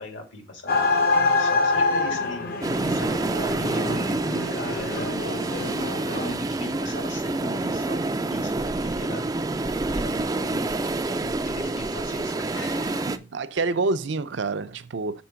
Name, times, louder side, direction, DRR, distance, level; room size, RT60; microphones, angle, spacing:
voice 1, 0.0-2.5 2.9-9.6 9.9-13.1, left 2 dB, 75° left, 2.0 m, -39 dB
sound 1, 0.7-6.3, left 3 dB, 50° left, 0.8 m, -26 dB
sound 2, 2.6-13.2, right 2 dB, 20° right, 0.3 m, -27 dB
voice 2, 13.3-15.2, right 3 dB, 65° right, 0.5 m, -27 dB
6.1 x 4.4 x 5.6 m
head